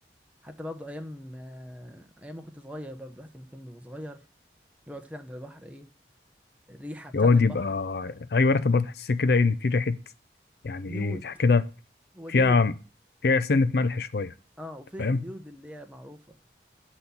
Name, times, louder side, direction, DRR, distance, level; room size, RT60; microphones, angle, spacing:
voice 1, 0.4-4.3 4.9-5.9 6.7-7.6 10.9-11.3 12.1-12.6 14.6-16.4, equal, 10° right, 0.8 m, -41 dB
voice 2, 7.1-10.0 10.6-11.6 12.3-12.7 13.2-14.3 15.0-15.2, left 4 dB, 65° left, 0.5 m, -23 dB
7.8 x 4.2 x 6.9 m
head